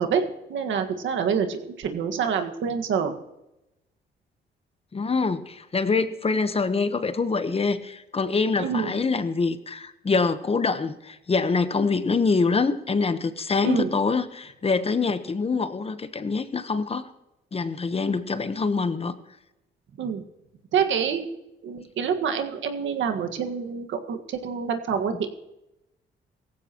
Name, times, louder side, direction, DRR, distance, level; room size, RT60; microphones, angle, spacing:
voice 1, 0.0-3.1 8.6-8.9 13.6-13.9 20.0-20.2 20.7-21.3 21.6-25.3, right 7 dB, 75° right, 6 dB, 1.7 m, -27 dB
voice 2, 4.9-17.1 17.5-19.1, left 4 dB, 30° left, 11 dB, 1.1 m, -25 dB
17.0 x 15.5 x 3.0 m, 0.92 s
cardioid pair, 90°, 20 cm